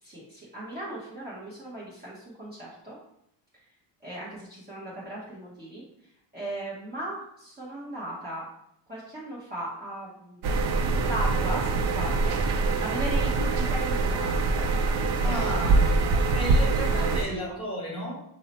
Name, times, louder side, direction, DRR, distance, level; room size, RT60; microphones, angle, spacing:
voice 1, 0.0-3.0 4.0-5.8 6.3-8.4 8.9-10.4 11.1-14.7 15.3-15.6 16.0-16.4 17.2-17.5, right 1 dB, 20° right, -7 dB, 0.9 m, -38 dB
sound 1, 10.4-17.2, right 3 dB, 65° right, 0.6 m, -24 dB
voice 2, 15.2-15.9 16.3-18.1, right 1 dB, 10° left, -4 dB, 1.4 m, -33 dB
5.4 x 2.1 x 4.1 m, 0.77 s
cardioid pair, 160°, 44 cm